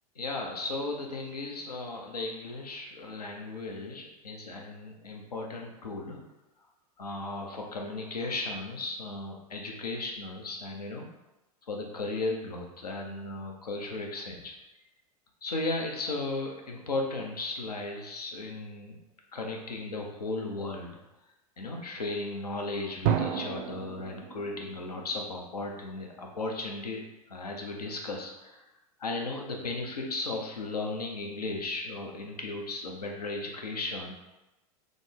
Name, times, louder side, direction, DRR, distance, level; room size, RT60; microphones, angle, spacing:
voice 1, 0.2-6.2 7.0-11.1 11.7-14.5 15.4-19.0 19.3-21.0 21.6-27.0 27.3-28.6 29.0-34.1, left 2 dB, 85° left, 1 dB, 0.7 m, -35 dB
Drum, 23.0-25.8, right 8 dB, 40° right, 0.4 m, -32 dB
3.7 x 2.0 x 3.6 m, 1.0 s
figure-of-eight pair, 95°, 20 cm